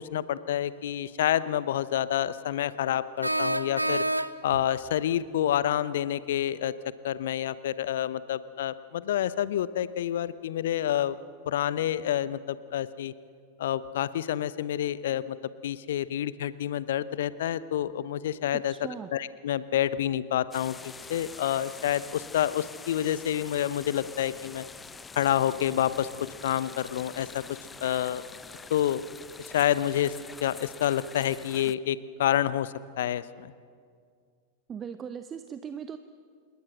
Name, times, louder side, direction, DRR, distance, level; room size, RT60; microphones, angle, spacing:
voice 1, 0.0-4.0 4.4-6.7 7.0-11.2 11.5-13.1 13.6-15.4 15.6-18.7 19.1-24.6 25.2-26.1 26.4-28.2 28.7-29.0 29.5-30.1 30.4-33.5, left 11 dB, 60° left, 16 dB, 0.8 m, -28 dB
sound 1, 0.9-1.0 3.2-4.6, right 1 dB, 85° right, 0.6 m, -28 dB
voice 2, 18.7-19.1 34.7-36.0, right 7 dB, 25° right, 10 dB, 0.9 m, -38 dB
sound 2, 20.5-31.7, left 4 dB, 15° left, 0.7 m, -46 dB
27.0 x 21.5 x 6.4 m, 2.2 s
figure-of-eight pair, 90°, 0 cm